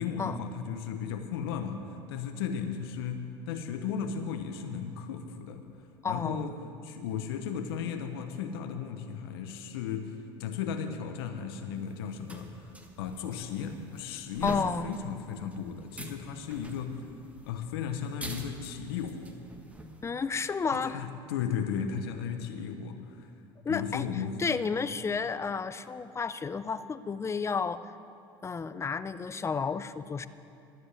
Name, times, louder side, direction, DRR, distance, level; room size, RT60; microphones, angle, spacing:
voice 1, 0.0-5.6 6.1-6.5 6.8-12.7 13.0-17.1 17.4-19.3 20.9-23.3 23.7-24.4 24.9-25.0, left 7 dB, 80° left, 6 dB, 0.9 m, -35 dB
voice 2, 6.0-6.5 14.4-14.9 20.0-21.0 23.6-24.1 24.4-27.8 28.4-30.3, left 5 dB, 20° left, 14 dB, 0.5 m, -31 dB
sound 1, 11.8-20.1, right 1 dB, 10° right, 1.5 m, -46 dB
13.0 x 7.9 x 8.2 m, 2.7 s
hypercardioid pair, 75°, 13 cm